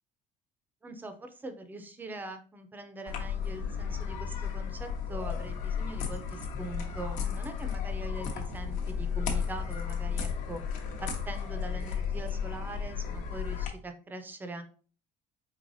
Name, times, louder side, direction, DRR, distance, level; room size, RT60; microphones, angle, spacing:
voice 1, 0.8-14.6, right 2 dB, 10° right, 8 dB, 0.5 m, -42 dB
sound 1, 3.1-13.7, left 7 dB, 60° left, 0.9 m, -34 dB
4.7 x 3.3 x 2.6 m, 0.39 s
cardioid pair, 160°, 15 cm